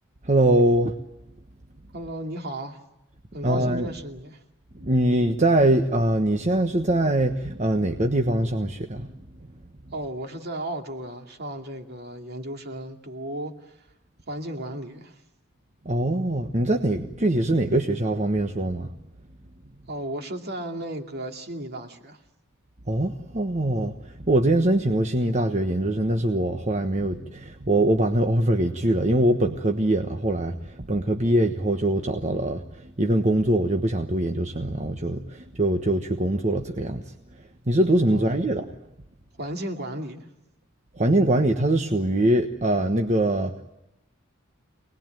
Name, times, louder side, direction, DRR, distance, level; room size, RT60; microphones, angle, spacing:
voice 1, 0.2-1.0 3.4-3.9 4.7-9.1 15.8-18.9 22.9-37.1 37.7-38.7 40.9-43.6, right 1 dB, 35° right, 5 dB, 1.3 m, -23 dB
voice 2, 1.9-2.8 3.3-4.4 9.9-13.8 14.3-15.2 19.9-22.2 38.1-38.4 39.4-40.3, right 1 dB, 50° right, 4 dB, 2.5 m, -34 dB
25.5 x 20.0 x 9.2 m, 0.90 s
head